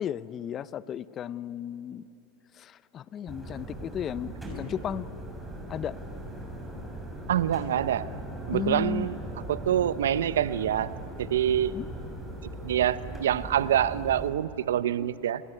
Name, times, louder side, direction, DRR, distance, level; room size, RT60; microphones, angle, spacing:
voice 1, 0.0-2.0 2.5-5.1 5.7-6.0 8.5-9.1 11.7-11.9, left 8 dB, 35° left, 17 dB, 0.7 m, -34 dB
sound 1, 3.3-14.3, right 1 dB, 5° right, 7.0 m, -39 dB
voice 2, 7.3-8.1 8.5-9.2 9.5-10.9 11.2-11.7 12.6-15.4, right 10 dB, 85° right, 16 dB, 0.8 m, -26 dB
28.5 x 20.0 x 10.0 m, 3.0 s
hypercardioid pair, 110°, 0 cm